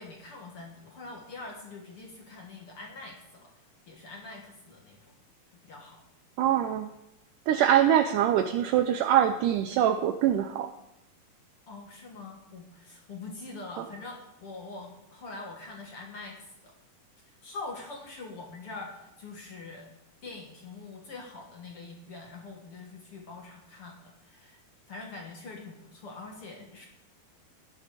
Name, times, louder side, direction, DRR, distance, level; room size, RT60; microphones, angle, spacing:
voice 1, 0.0-3.5 3.9-5.1 5.6-6.0 11.7-16.7 17.2-19.9 20.2-24.6 24.9-26.9, left 3 dB, 50° left, 1 dB, 2.1 m, -44 dB
voice 2, 6.4-6.9 7.5-10.7 13.8-13.9, right 10 dB, 80° right, 8 dB, 1.9 m, -24 dB
15.5 x 10.5 x 5.1 m, 0.88 s
omnidirectional pair, 4.3 m